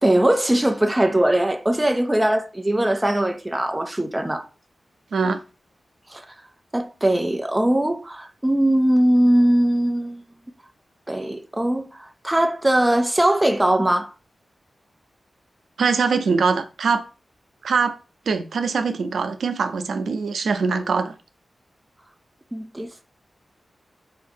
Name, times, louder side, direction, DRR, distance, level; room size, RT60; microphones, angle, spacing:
voice 1, 0.0-4.5 6.1-6.3 6.7-10.2 11.1-14.1 22.5-23.0, right 1 dB, 10° right, 0.4 m, -20 dB
voice 2, 15.8-17.0 17.6-18.0 18.3-21.1, right 5 dB, 90° right, 0.5 m, -22 dB
4.6 x 2.7 x 3.5 m
wide cardioid pair, 150°, 0 cm